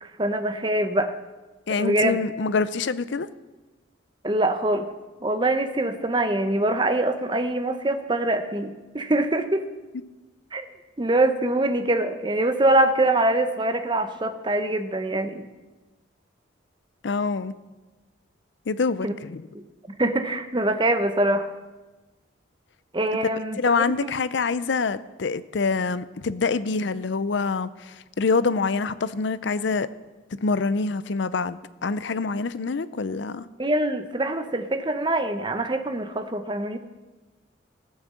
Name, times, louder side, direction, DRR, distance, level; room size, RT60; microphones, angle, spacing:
voice 1, 0.0-1.1 1.8-2.2 4.2-4.9 5.2-9.6 10.5-10.7 11.0-15.5 19.0-19.1 19.5-19.6 20.0-21.5 22.9-23.6 24.0-24.1 33.6-36.8, right 1 dB, 25° right, 8 dB, 0.8 m, -24 dB
voice 2, 1.7-3.3 17.0-17.5 18.7-19.4 23.6-29.9 30.4-33.5, left 4 dB, 65° left, 15 dB, 0.5 m, -25 dB
14.5 x 6.4 x 7.6 m, 1.2 s
head